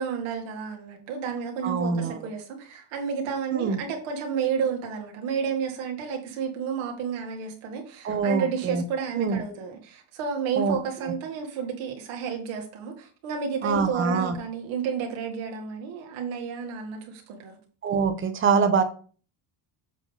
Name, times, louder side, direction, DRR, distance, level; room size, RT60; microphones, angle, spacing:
voice 1, 0.0-17.6, right 6 dB, 85° right, 1 dB, 2.1 m, -31 dB
voice 2, 1.6-2.2 3.5-3.8 8.0-8.8 9.1-9.4 10.6-10.8 13.6-14.4 17.8-18.8, right 5 dB, 25° right, 9 dB, 0.7 m, -24 dB
7.5 x 3.5 x 5.5 m, 0.40 s
cardioid pair, 180°, 47 cm